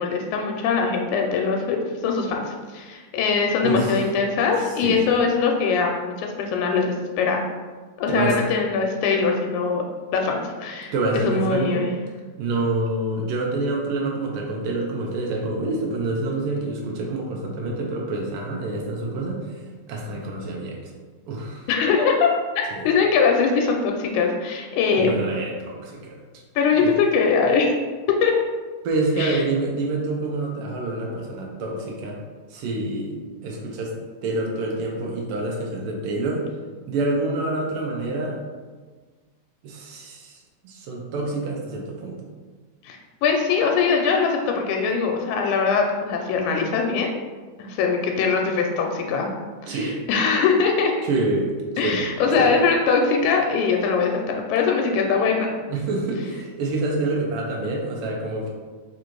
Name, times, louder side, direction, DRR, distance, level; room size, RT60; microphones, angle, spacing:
voice 1, 0.0-7.4 8.0-9.9 10.1-10.9 11.2-11.9 21.7-22.3 22.6-25.1 26.6-27.7 28.1-28.3 29.2-29.4 42.8-47.1 47.6-49.3 49.7-49.8 50.1-50.9 51.8-55.5, left 5 dB, 90° left, 2 dB, 2.0 m, -22 dB
voice 2, 3.6-4.1 4.6-5.1 8.1-8.5 10.9-11.9 12.4-19.6 19.9-20.9 21.3-21.7 22.7-22.9 24.9-26.2 26.8-27.0 28.8-32.2 32.5-33.1 33.4-33.9 34.2-36.5 36.9-38.4 39.6-42.2 49.7-50.0 51.0-51.5 51.8-52.5 55.7-58.5, right 2 dB, 90° right, -1 dB, 1.2 m, -27 dB
4.6 x 2.5 x 4.5 m, 1.4 s
omnidirectional pair, 3.4 m